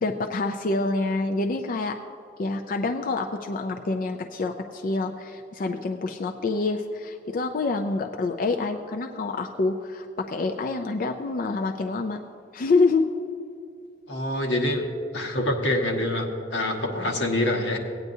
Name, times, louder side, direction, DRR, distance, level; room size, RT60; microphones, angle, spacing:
voice 1, 0.0-2.0 2.4-12.2 12.5-13.1, left 3 dB, 50° left, 4 dB, 0.4 m, -26 dB
voice 2, 14.1-14.8 15.1-17.8, left 1 dB, 90° left, 1 dB, 1.3 m, -25 dB
17.0 x 9.3 x 2.7 m, 2.5 s
head